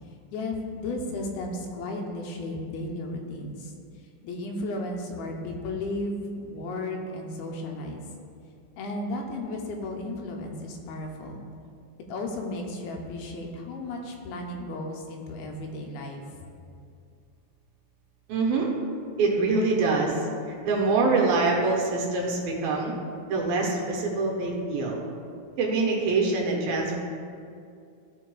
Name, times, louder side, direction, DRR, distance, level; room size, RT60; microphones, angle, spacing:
voice 1, 0.3-3.7 4.2-8.0 8.8-11.4 12.1-16.2, left 2 dB, 90° left, 1 dB, 2.6 m, -34 dB
voice 2, 18.3-18.7 19.2-22.9 23.3-25.0 25.6-27.0, right 3 dB, 75° right, -1 dB, 2.6 m, -25 dB
14.0 x 4.7 x 2.2 m, 2.4 s
omnidirectional pair, 4.3 m